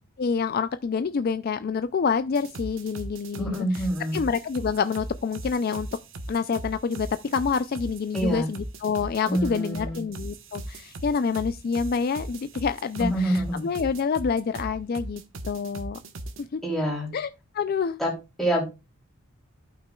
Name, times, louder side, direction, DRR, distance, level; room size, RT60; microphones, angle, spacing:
voice 1, 0.2-3.9 4.1-5.9 6.3-15.2 15.5-16.0 16.4-16.6 17.1-18.0, left 5 dB, 45° left, 0.3 m, -27 dB
sound 1, 2.3-16.4, right 1 dB, 55° right, 0.9 m, -38 dB
voice 2, 3.4-4.2 8.1-8.5 9.3-10.0 13.0-13.7 16.6-17.1 18.0-18.1 18.4-18.6, right 1 dB, ahead, 3.1 m, -26 dB
15.0 x 5.8 x 2.3 m
head